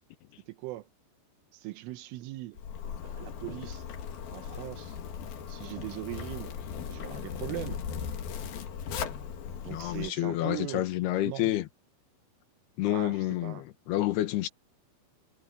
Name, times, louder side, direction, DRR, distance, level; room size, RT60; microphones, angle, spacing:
voice 1, 0.5-0.9 1.5-2.6 3.0-3.8 4.3-5.0 5.5-6.5 6.9-7.8 9.6-10.9 11.2-11.5 12.8-13.6, right 17 dB, 80° right, 3.4 m, -40 dB
Zipper (clothing), 2.6-10.1, left 7 dB, 55° left, 3.2 m, -38 dB
voice 2, 9.7-11.7 12.8-14.5, left 15 dB, 75° left, 2.4 m, -29 dB
omnidirectional pair, 5.9 m